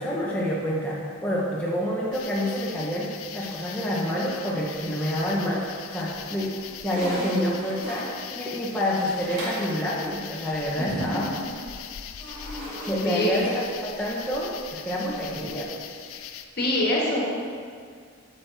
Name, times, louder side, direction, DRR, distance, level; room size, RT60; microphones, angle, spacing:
voice 1, 0.0-6.5 6.8-11.3 12.9-14.5 14.8-15.7, equal, 5° left, -6 dB, 0.8 m, -28 dB
sound 1, 2.1-16.5, left 9 dB, 65° left, 0.4 m, -41 dB
sound 2, 5.1-5.7 6.1-9.7 12.2-14.2, equal, 55° right, 2.1 m, -38 dB
voice 2, 13.0-13.4 16.1-16.3 16.6-17.2, left 1 dB, 45° left, -3 dB, 1.5 m, -25 dB
8.5 x 7.4 x 3.4 m, 2.1 s
head